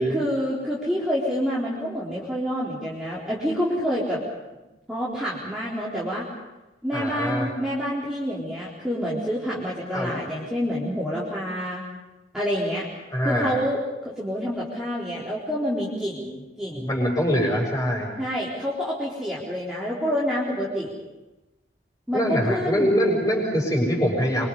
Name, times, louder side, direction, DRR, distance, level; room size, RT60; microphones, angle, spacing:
voice 1, 0.0-4.2 4.9-6.2 6.8-11.8 12.3-12.9 13.2-16.9 18.2-20.9 22.1-22.9, equal, 5° right, -8 dB, 4.2 m, -28 dB
voice 2, 6.9-7.5 9.9-10.1 13.1-13.6 16.8-18.1 22.1-24.5, equal, 20° left, -7 dB, 6.9 m, -23 dB
26.5 x 25.0 x 5.6 m, 1.1 s
head